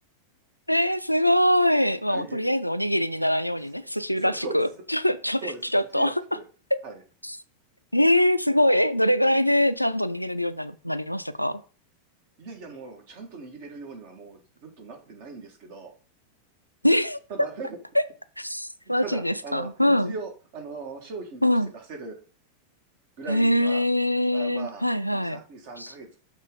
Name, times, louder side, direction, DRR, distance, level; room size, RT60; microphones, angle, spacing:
voice 1, 0.7-6.2 7.2-7.4 7.9-11.6 16.8-17.2 18.0-18.1 18.4-20.2 21.4-21.7 23.3-25.4 25.8-25.9, left 1 dB, 90° left, 0.3 m, -23 dB
voice 2, 2.1-2.4 4.2-4.6 5.4-5.6 5.9-6.4 6.8-7.0 12.4-15.9 17.3-17.8 19.0-22.2 23.2-23.8 24.3-24.8 25.1-26.2, right 4 dB, 50° right, 1.8 m, -39 dB
6.6 x 3.6 x 5.0 m
figure-of-eight pair, 90°, 0 cm